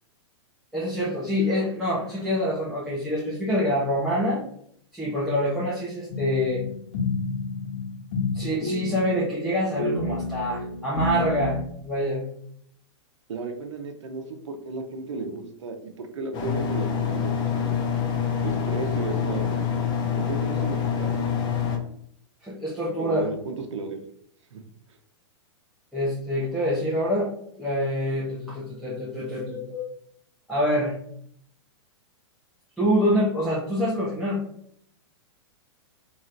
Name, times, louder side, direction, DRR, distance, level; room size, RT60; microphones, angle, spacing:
voice 1, 0.7-4.4 4.9-6.6 8.3-11.6 11.8-12.2 22.4-23.3 25.9-27.3 27.6-29.8 30.5-30.9 32.8-34.4, equal, ahead, -8 dB, 0.9 m, -26 dB
sound 1, 6.1-11.6, left 3 dB, 65° left, 1.4 m, -30 dB
voice 2, 13.3-17.8 18.4-19.5 20.1-21.2 23.0-24.0 24.5-24.6, right 3 dB, 80° right, 5 dB, 0.9 m, -34 dB
sound 2, 16.3-21.8, left 7 dB, 30° left, 0.7 m, -26 dB
3.1 x 3.1 x 3.9 m, 0.67 s
hypercardioid pair, 140°, 15 cm